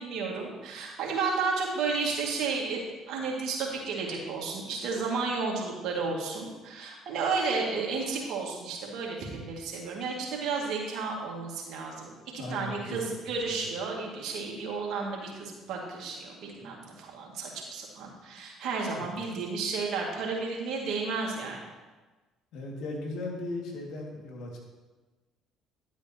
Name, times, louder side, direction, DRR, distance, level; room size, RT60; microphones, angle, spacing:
voice 1, 0.0-2.8 3.1-21.6, right 4 dB, 65° right, -1 dB, 2.2 m, -32 dB
voice 2, 12.4-13.6 18.9-19.1 22.5-24.6, left 2 dB, 70° left, -1 dB, 2.2 m, -38 dB
10.5 x 8.7 x 3.0 m, 1.2 s
hypercardioid pair, 60°, 0 cm